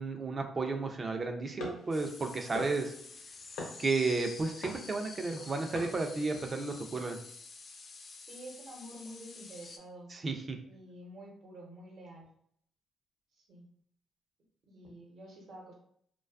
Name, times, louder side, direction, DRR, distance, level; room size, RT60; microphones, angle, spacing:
voice 1, 0.0-2.9 3.8-7.2 10.1-10.6, right 3 dB, 35° right, 4 dB, 0.4 m, -33 dB
sound 1, 1.6-6.7, left 2 dB, 90° left, 0.7 m, -47 dB
sound 2, 1.9-9.8, left 4 dB, 45° left, 0.3 m, -49 dB
voice 2, 8.2-10.1 10.7-12.3 13.3-13.7 14.6-15.7, right 1 dB, 65° right, -1 dB, 0.9 m, -49 dB
2.4 x 2.3 x 2.3 m, 0.67 s
cardioid pair, 90°, 0 cm